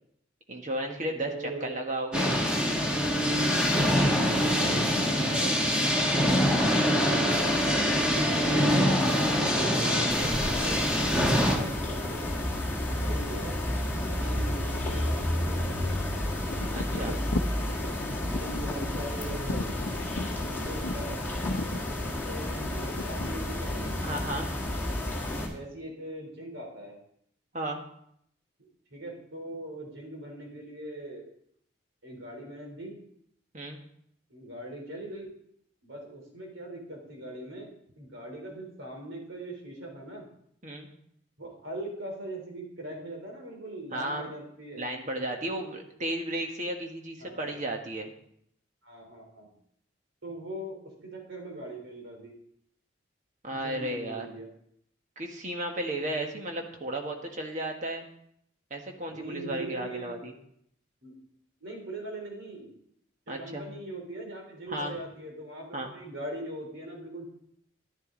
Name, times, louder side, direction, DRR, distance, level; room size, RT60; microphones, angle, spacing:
voice 1, 0.5-1.3 1.6-2.3 16.7-17.2 24.0-24.5 27.5-27.8 33.5-33.8 40.6-40.9 43.9-44.3 44.8-48.1 53.4-54.3 55.2-58.1 58.7-60.3 63.3-63.7 64.7-65.0 65.7-65.9, right 1 dB, 40° right, 2 dB, 1.4 m, -34 dB
voice 2, 1.1-1.8 3.4-4.4 5.0-8.5 9.4-12.3 12.9-13.6 14.0-16.2 16.9-17.2 18.2-19.7 20.3-21.2 21.8-23.9 25.2-27.0 28.9-31.3 32.0-33.0 34.3-35.3 35.8-40.3 41.4-44.8 47.2-47.5 48.8-49.5 50.2-50.8 51.0-52.3 53.5-54.5 59.1-60.2 61.0-61.1 61.6-62.7 63.3-67.3, right 1 dB, 75° right, 0 dB, 3.4 m, -41 dB
sound 1, 2.1-11.6, equal, 5° right, 1.4 m, -24 dB
sound 2, 10.1-25.5, left 1 dB, 10° left, 1.8 m, -31 dB
sound 3, 16.5-23.5, left 2 dB, 85° left, 0.6 m, -37 dB
10.5 x 10.5 x 3.9 m, 0.70 s
head